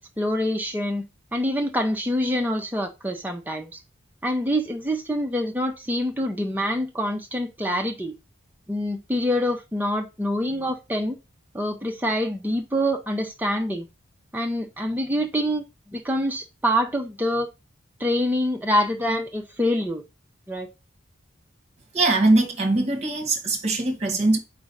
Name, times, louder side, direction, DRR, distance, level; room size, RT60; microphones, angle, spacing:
voice 1, 0.2-1.0 1.3-3.8 4.2-8.2 8.7-11.1 11.5-13.9 14.3-15.6 15.9-17.5 18.0-20.0 20.5-20.7, equal, 10° right, 0.9 m, -25 dB
voice 2, 21.9-24.4, right 2 dB, 35° right, 1.6 m, -21 dB
4.9 x 3.9 x 5.5 m
head